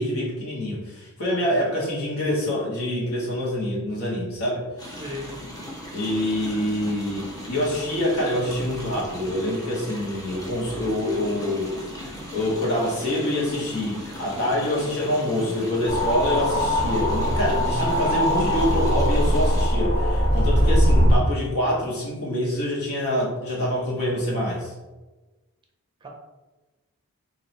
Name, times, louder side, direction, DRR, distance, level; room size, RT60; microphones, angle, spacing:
voice 1, 0.0-4.7 5.9-24.7, left 1 dB, 75° left, -5 dB, 1.5 m, -26 dB
sound 1, 4.8-19.7, equal, 15° left, 0.7 m, -38 dB
voice 2, 5.0-5.4 17.8-18.2 20.6-20.9 26.0-26.1, right 1 dB, 20° right, 0 dB, 0.6 m, -35 dB
sound 2, 15.8-21.2, equal, 45° left, 1.4 m, -21 dB
3.1 x 2.9 x 4.1 m, 1.1 s
head